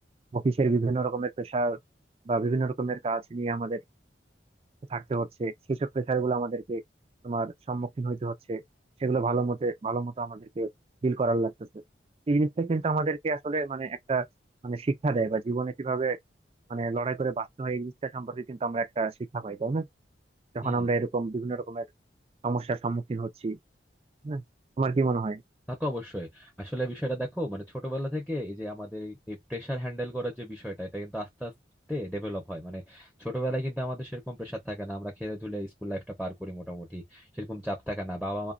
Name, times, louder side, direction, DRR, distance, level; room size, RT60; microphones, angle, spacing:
voice 1, 0.3-1.8 2.3-3.8 4.9-6.8 7.2-8.6 9.0-10.7 11.0-11.8 12.3-14.3 14.6-16.2 16.7-19.9 20.5-21.9 22.4-23.6 24.2-24.4 24.8-25.4, right 3 dB, 35° right, 0.4 m, -29 dB
voice 2, 25.7-31.5 31.9-38.5, equal, ahead, 0.6 m, -34 dB
2.9 x 2.2 x 2.5 m
head